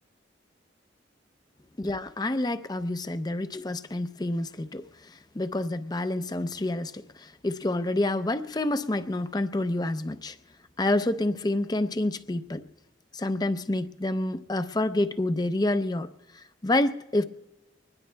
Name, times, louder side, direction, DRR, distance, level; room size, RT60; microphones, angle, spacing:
voice 1, 1.8-4.8 5.3-10.4 10.8-12.6 13.1-16.1 16.6-17.2, left 1 dB, 20° left, 11 dB, 0.5 m, -28 dB
25.0 x 20.5 x 2.2 m, 0.98 s
head